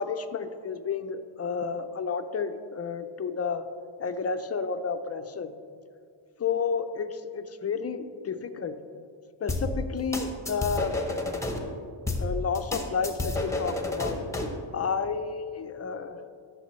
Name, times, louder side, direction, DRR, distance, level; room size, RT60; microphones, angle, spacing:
voice 1, 0.0-3.6 4.0-5.5 6.4-8.8 9.4-10.9 12.2-14.2 14.7-16.2, left 5 dB, 35° left, 9 dB, 0.5 m, -31 dB
sound 1, 9.5-11.6 12.1-14.6, left 2 dB, 5° left, 0.9 m, -30 dB
13.0 x 6.2 x 3.1 m, 2.2 s
cardioid pair, 100°, 47 cm